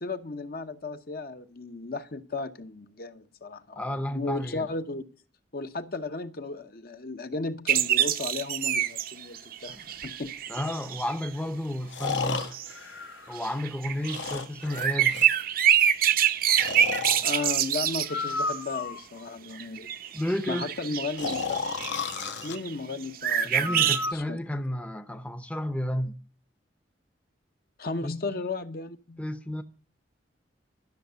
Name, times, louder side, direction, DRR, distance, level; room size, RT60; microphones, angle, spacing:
voice 1, 0.0-3.8 4.1-5.0 5.5-9.8 10.0-10.3 17.2-19.9 20.5-21.6 22.4-24.4 27.8-29.3, left 3 dB, 55° left, 0.9 m, -35 dB
voice 2, 3.8-4.7 10.5-12.5 13.3-15.2 20.1-20.7 23.4-26.1 28.0-28.2 29.2-29.6, left 1 dB, 5° left, 0.7 m, -32 dB
sound 1, 7.7-11.3 12.1-12.7 13.4-18.6 19.6-23.0 23.2-24.1, right 10 dB, 50° right, 0.7 m, -26 dB
Breathing, 10.0-10.1 11.9-13.6 14.0-15.4 16.5-17.2 18.0-19.2 21.2-22.6 23.6-24.1, left 4 dB, 75° left, 1.5 m, -32 dB
13.0 x 6.6 x 8.0 m
head